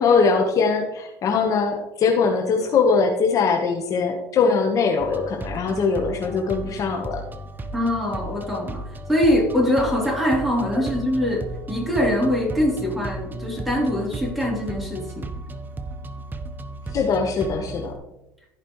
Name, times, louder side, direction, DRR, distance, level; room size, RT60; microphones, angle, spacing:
voice 1, 0.0-7.2 16.9-17.9, left 5 dB, 45° left, 3 dB, 1.1 m, -21 dB
sound 1, 5.0-18.0, right 2 dB, 25° right, 0.9 m, -35 dB
voice 2, 7.7-8.8 9.1-15.3, equal, ahead, -3 dB, 3.5 m, -23 dB
14.5 x 5.2 x 3.1 m, 0.93 s
supercardioid pair, 95°, 8 cm